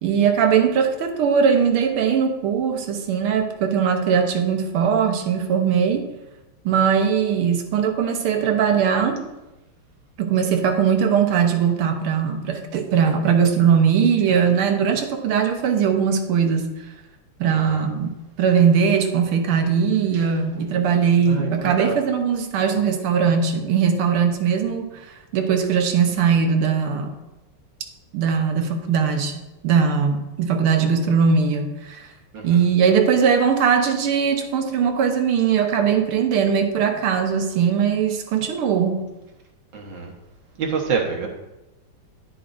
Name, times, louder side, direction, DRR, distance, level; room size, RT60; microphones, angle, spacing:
voice 1, 0.0-6.1 6.7-9.3 10.2-16.7 17.4-25.1 25.3-27.2 28.1-32.1 32.4-39.0, right 7 dB, 80° right, 5 dB, 1.9 m, -20 dB
voice 2, 17.5-17.9 21.3-22.0 32.3-32.7 39.7-40.1 40.6-41.3, right 5 dB, 60° right, 1 dB, 1.9 m, -27 dB
10.5 x 10.5 x 2.6 m, 1.0 s
omnidirectional pair, 2.3 m